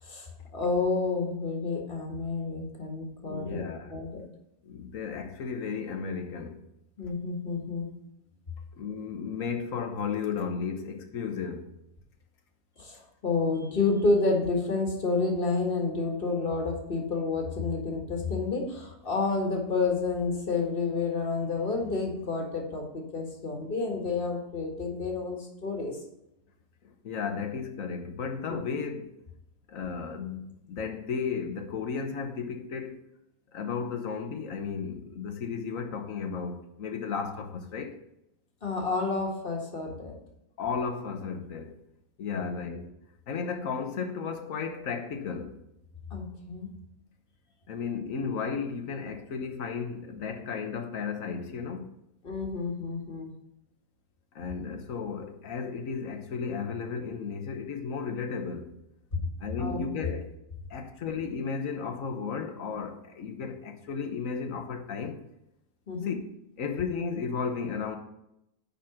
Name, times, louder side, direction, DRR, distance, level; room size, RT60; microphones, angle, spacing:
voice 1, 0.0-3.6 3.9-4.2 7.0-7.9 12.8-26.0 28.5-28.6 38.6-40.2 42.3-42.6 46.1-46.7 52.2-53.3 59.6-60.1 65.9-66.2, left 3 dB, 40° left, 1.8 m, -30 dB
voice 2, 3.2-4.0 4.6-6.6 8.8-11.7 26.8-29.1 29.7-33.0 33.5-38.0 40.6-41.8 42.2-42.9 43.3-45.6 47.7-51.9 54.3-58.7 59.4-60.3 60.7-65.2 66.0-66.1 66.6-68.0, left 5 dB, 65° left, 1.4 m, -34 dB
10.5 x 4.2 x 5.9 m
omnidirectional pair, 1.6 m